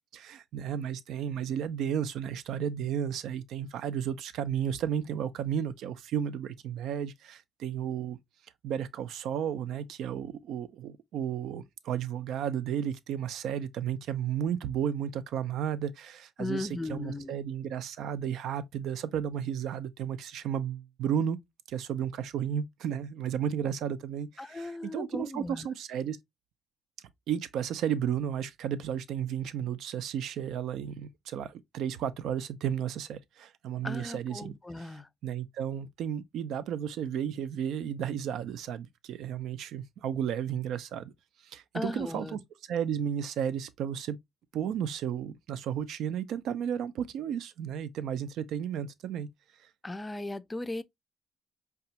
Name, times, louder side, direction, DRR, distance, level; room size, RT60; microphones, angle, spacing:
voice 1, 0.1-8.2 8.6-21.4 21.7-26.2 27.3-34.5 35.2-41.1 41.4-42.4 42.7-44.2 44.5-49.3, right 9 dB, 80° right, 0.4 m, -33 dB
voice 2, 16.4-17.4 24.4-25.7 33.8-35.1 41.7-42.4 49.8-50.8, left 2 dB, 20° left, 0.4 m, -37 dB
4.9 x 2.3 x 2.7 m
cardioid pair, 90°, 0 cm